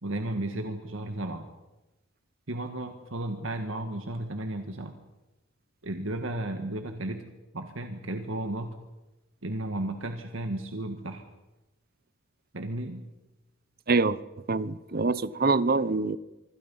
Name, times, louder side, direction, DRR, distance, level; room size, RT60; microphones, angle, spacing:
voice 1, 0.0-1.5 2.5-5.0 5.8-7.2 7.5-8.7 9.4-11.2 12.5-13.0, right 1 dB, 65° right, 1.8 m, -34 dB
voice 2, 13.9-14.2 14.5-16.2, right 3 dB, 45° right, 0.8 m, -25 dB
25.5 x 25.5 x 5.6 m
head